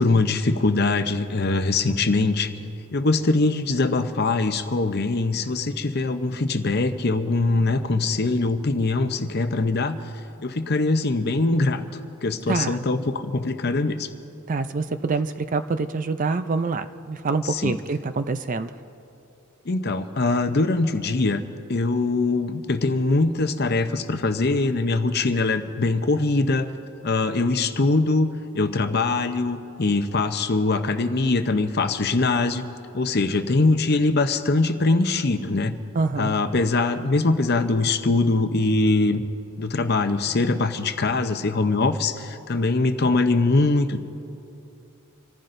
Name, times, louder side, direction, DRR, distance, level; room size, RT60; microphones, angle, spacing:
voice 1, 0.0-2.5 2.9-10.0 10.4-11.8 12.2-14.1 17.4-17.7 19.7-21.4 21.7-26.7 27.0-32.6 32.9-35.7 36.2-39.2 39.6-44.0, left 3 dB, 45° left, 8 dB, 0.7 m, -22 dB
voice 2, 12.5-12.8 14.5-18.7 35.9-36.3, right 4 dB, 35° right, 10 dB, 0.4 m, -26 dB
27.0 x 15.0 x 2.6 m, 2.8 s
head